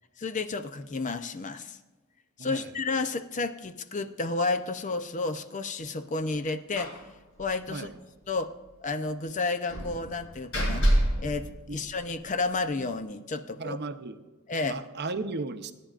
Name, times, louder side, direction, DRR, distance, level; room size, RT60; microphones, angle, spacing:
voice 1, 0.2-1.8 2.4-7.0 7.4-7.9 8.3-8.5 8.8-10.9 11.2-13.8 14.5-14.8, left 3 dB, 35° left, 10 dB, 0.6 m, -31 dB
voice 2, 2.4-2.7 7.7-7.9 11.7-11.8 13.6-14.2 14.7-15.7, right 3 dB, 50° right, 9 dB, 0.7 m, -35 dB
Slam, 6.8-7.1 7.4-7.5 7.8-7.9 9.7-12.3, right 1 dB, 65° left, 5.0 m, -28 dB
25.5 x 10.0 x 2.5 m, 1.2 s
head